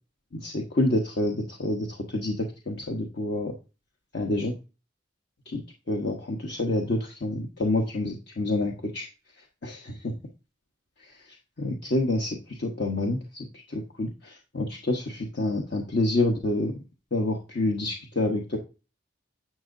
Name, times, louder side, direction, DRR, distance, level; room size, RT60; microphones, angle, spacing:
voice 1, 0.3-3.5 4.1-4.5 5.5-9.1 9.4-10.2 11.0-16.8 17.1-18.6, left 1 dB, 55° left, 1 dB, 1.1 m, -28 dB
10.5 x 6.1 x 2.6 m, 0.31 s
head